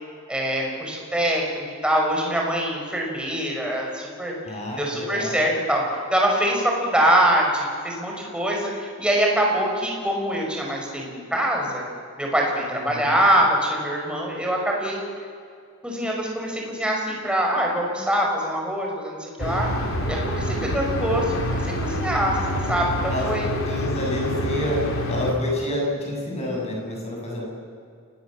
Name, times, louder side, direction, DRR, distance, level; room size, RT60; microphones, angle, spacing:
voice 1, 0.3-5.8 6.1-11.8 12.2-15.0 15.8-19.7 20.1-23.5, right 1 dB, 5° right, -1 dB, 5.8 m, -24 dB
voice 2, 4.4-5.4 12.7-13.2 20.4-20.9 23.1-27.5, left 1 dB, 30° left, -1 dB, 7.8 m, -29 dB
sound 1, 19.4-25.3, equal, 65° left, 3.9 m, -27 dB
28.5 x 19.5 x 7.5 m, 2.3 s
head